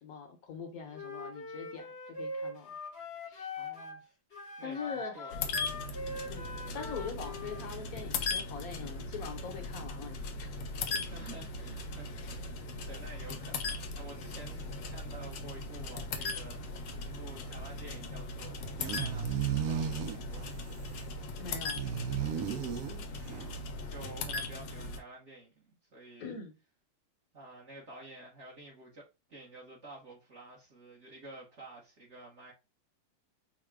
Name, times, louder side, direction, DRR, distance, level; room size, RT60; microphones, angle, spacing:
voice 1, 0.0-2.8 3.3-3.5 4.6-5.3 6.3-10.6 10.9-11.3 21.4-21.9 26.2-26.5, left 5 dB, 60° left, 1.2 m, -43 dB
Wind instrument woodwind instrument, 0.9-4.0 4.3-7.7, left 2 dB, 45° left, 0.9 m, -42 dB
voice 2, 3.6-4.0 4.6-5.5 10.9-12.6 12.9-20.5 23.0-26.3 27.3-32.5, right 2 dB, 45° right, 1.2 m, -51 dB
sound 1, 5.3-25.0, left 3 dB, 80° left, 1.3 m, -39 dB
sound 2, 14.1-14.3 14.6-14.7 15.1-15.2 15.7-15.8 16.2-16.3 16.5-16.8 17.5-17.6 18.1-18.2 18.5-23.7, right 8 dB, 70° right, 0.9 m, -35 dB
4.8 x 2.2 x 3.3 m
omnidirectional pair, 1.9 m